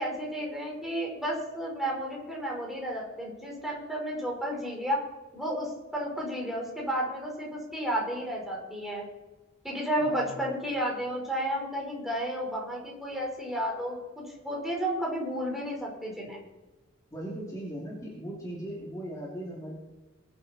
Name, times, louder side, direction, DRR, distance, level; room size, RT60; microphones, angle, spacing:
voice 1, 0.0-5.0 5.3-9.1 9.6-16.4, equal, ahead, -2 dB, 4.6 m, -32 dB
voice 2, 10.0-10.6 17.1-19.7, right 1 dB, 20° left, -4 dB, 2.8 m, -38 dB
22.5 x 8.9 x 4.3 m, 1.1 s
head